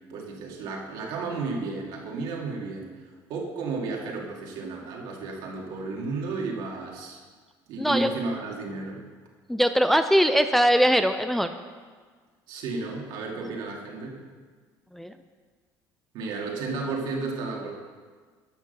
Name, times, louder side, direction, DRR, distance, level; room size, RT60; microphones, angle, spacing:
voice 1, 0.1-2.9 3.3-7.2 7.7-9.0 12.5-14.2 16.1-17.7, right 3 dB, 70° right, 0 dB, 2.2 m, -33 dB
voice 2, 7.8-8.1 9.5-11.5 14.9-15.1, equal, 5° left, 8 dB, 0.4 m, -21 dB
11.5 x 6.2 x 6.7 m, 1.5 s
cardioid pair, 130°, 8 cm